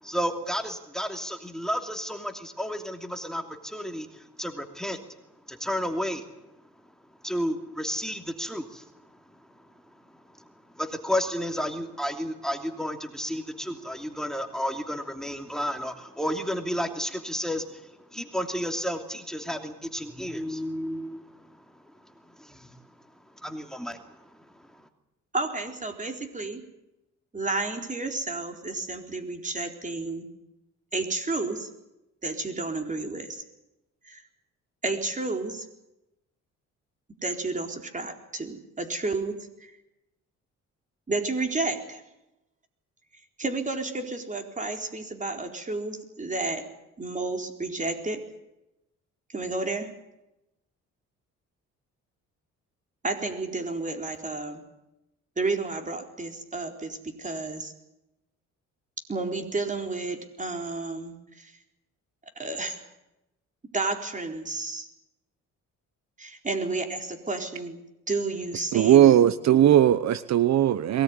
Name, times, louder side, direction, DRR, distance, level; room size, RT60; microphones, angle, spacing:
voice 1, 0.0-5.0 5.5-6.3 7.2-22.8 23.2-24.9, equal, ahead, 6 dB, 2.9 m, -32 dB
voice 2, 25.3-26.6 27.3-30.3 30.9-31.7 32.2-33.4 34.0-34.2 34.8-35.7 37.2-39.7 41.1-42.0 43.4-46.7 47.0-48.2 49.3-49.9 53.0-54.6 55.4-57.7 59.1-61.5 62.4-62.8 63.7-64.9 66.2-69.4, right 3 dB, 25° right, 4 dB, 4.1 m, -31 dB
voice 3, 68.7-71.0, right 11 dB, 65° right, 15 dB, 1.0 m, -18 dB
22.5 x 18.0 x 9.7 m, 0.93 s
cardioid pair, 90°, 30 cm